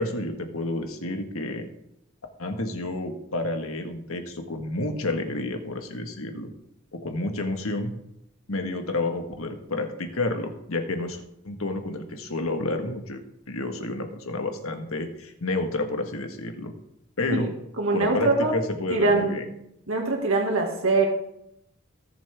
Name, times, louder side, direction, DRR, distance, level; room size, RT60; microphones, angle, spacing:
voice 1, 0.0-1.7 2.4-6.5 6.9-8.0 8.5-13.2 13.5-16.7 17.2-17.5 17.9-19.4, left 2 dB, 80° left, 5 dB, 1.7 m, -30 dB
voice 2, 17.8-18.5 18.9-19.4 19.9-21.1, right 3 dB, 75° right, 1 dB, 2.1 m, -23 dB
20.0 x 7.3 x 3.6 m, 0.80 s
head